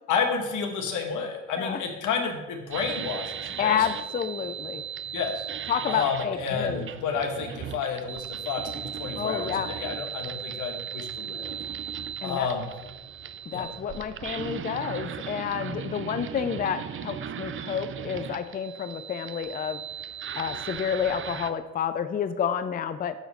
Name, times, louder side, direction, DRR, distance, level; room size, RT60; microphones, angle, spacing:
voice 1, 0.1-3.9 5.1-5.5 5.9-11.5 12.2-12.6 13.5-13.7, left 5 dB, 85° left, 3 dB, 1.3 m, -30 dB
sound 1, 2.7-21.5, right 8 dB, 45° right, 0.4 m, -37 dB
voice 2, 3.6-4.8 5.7-6.9 9.2-9.7 12.2-12.5 13.5-19.8 20.4-23.1, left 8 dB, 30° left, 10 dB, 0.4 m, -29 dB
8.9 x 3.1 x 6.3 m, 1.1 s
cardioid pair, 90°, 30 cm